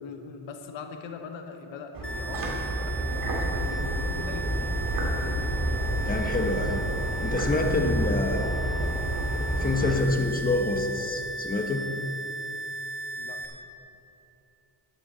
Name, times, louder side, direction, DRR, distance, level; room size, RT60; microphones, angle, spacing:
voice 1, 0.0-4.7 5.1-5.4 13.2-13.6, left 6 dB, 85° left, 6 dB, 1.0 m, -42 dB
sound 1, 1.9-9.9, right 1 dB, 50° right, 3.0 m, -29 dB
sound 2, 2.0-13.5, right 2 dB, ahead, 1.5 m, -36 dB
voice 2, 6.0-6.8 7.2-8.6 9.6-11.8, left 2 dB, 20° left, 3 dB, 1.2 m, -27 dB
12.0 x 11.5 x 4.1 m, 2.8 s
cardioid pair, 105°, 44 cm